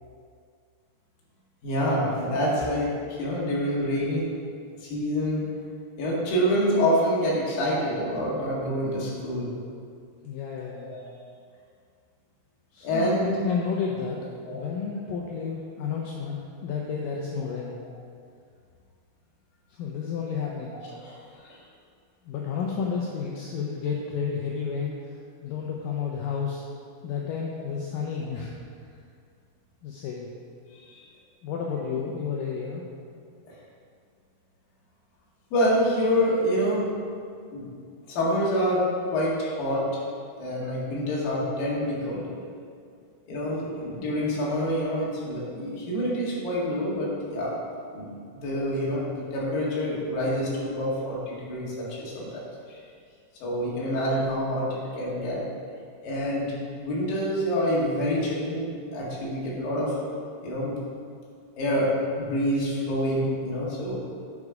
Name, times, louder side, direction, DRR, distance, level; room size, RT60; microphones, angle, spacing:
voice 1, 1.6-4.3 4.8-5.5 6.0-9.6 10.7-11.1 12.8-13.3 14.4-14.6 20.9-21.6 30.7-31.1 33.5-33.6 35.5-36.9 37.5-37.7 38.1-40.0 40.4-42.3 43.3-47.5 47.9-52.8 53.4-55.4 56.0-56.5 56.8-60.0 60.4-60.7 61.6-64.0, equal, 65° left, -6 dB, 3.4 m, -27 dB
voice 2, 10.2-10.9 12.7-17.8 19.7-20.8 22.3-25.1 25.4-26.6 27.0-28.5 29.8-30.3 31.4-32.8, left 6 dB, 85° left, -2 dB, 2.0 m, -31 dB
9.8 x 5.4 x 4.8 m, 2.2 s
omnidirectional pair, 4.8 m